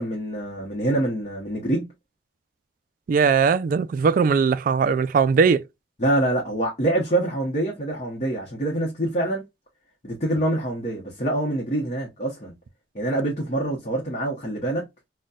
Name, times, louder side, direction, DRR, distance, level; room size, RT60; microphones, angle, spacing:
voice 1, 0.0-1.9 6.0-9.4 10.0-12.5 12.9-14.8, right 1 dB, 40° left, 0.9 m, -25 dB
voice 2, 3.1-5.6, right 5 dB, 50° right, 0.3 m, -19 dB
4.0 x 2.2 x 2.3 m
head